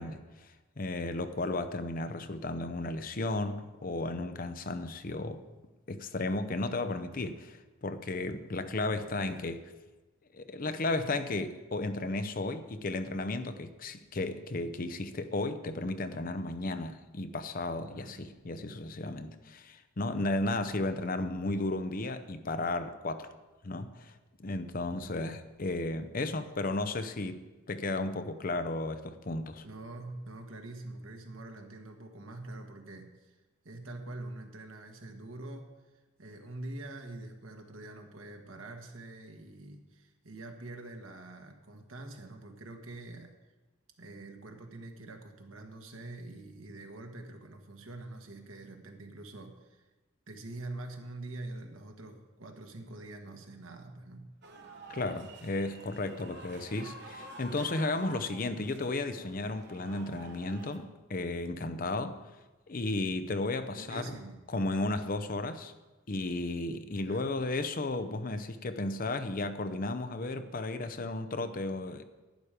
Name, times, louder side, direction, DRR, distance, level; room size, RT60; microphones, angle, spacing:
voice 1, 0.0-5.4 5.9-9.6 10.3-23.3 23.6-24.1 24.4-29.6 54.9-62.2 62.7-64.2 64.5-65.7 66.1-72.0, left 2 dB, 40° left, 10 dB, 0.7 m, -34 dB
voice 2, 8.9-9.4 17.8-18.3 24.9-25.2 29.6-33.4 33.6-35.7 36.2-43.3 44.0-49.9 50.3-54.3 63.7-64.4 66.9-67.3, right 2 dB, 70° right, 3 dB, 1.6 m, -45 dB
sound 1, 54.4-60.8, right 2 dB, 55° right, 1.3 m, -49 dB
11.0 x 10.5 x 5.1 m, 1.2 s
head